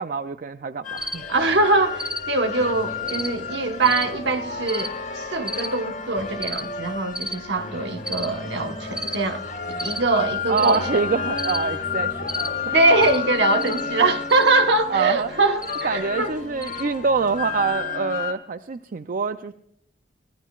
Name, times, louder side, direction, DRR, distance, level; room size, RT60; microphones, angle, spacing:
voice 1, 0.0-1.2 10.5-12.8 14.9-15.3 15.8-19.5, right 4 dB, 50° right, 0.4 m, -25 dB
sound 1, 0.8-18.3, left 6 dB, 50° left, 1.6 m, -31 dB
Cricket, 1.0-17.7, equal, 5° right, 1.2 m, -37 dB
voice 2, 1.3-9.4 9.8-11.1 12.7-16.4, right 2 dB, 70° right, 1.1 m, -22 dB
23.0 x 16.0 x 2.4 m
head